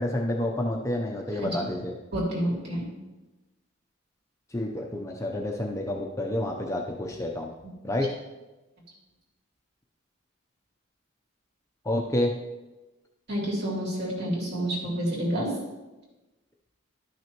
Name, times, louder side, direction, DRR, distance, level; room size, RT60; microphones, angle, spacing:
voice 1, 0.0-2.0 4.5-7.5 7.8-8.1 11.8-12.3, left 1 dB, 15° left, 0 dB, 0.5 m, -29 dB
voice 2, 2.1-2.8 13.3-15.5, right 1 dB, 50° right, -5 dB, 2.9 m, -29 dB
12.0 x 6.1 x 3.0 m, 1.1 s
head